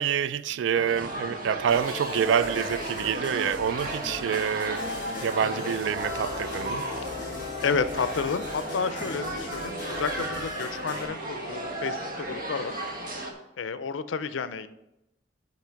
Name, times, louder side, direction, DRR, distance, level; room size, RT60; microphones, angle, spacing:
voice 1, 0.0-6.8, right 8 dB, 70° right, 0.3 m, -27 dB
sound 1, 0.7-13.3, right 1 dB, 50° right, 1.1 m, -35 dB
sound 2, 1.7-11.1, left 3 dB, 45° left, 2.2 m, -39 dB
voice 2, 7.6-12.7 13.6-14.7, left 5 dB, 90° left, 0.5 m, -31 dB
6.0 x 5.8 x 5.7 m
head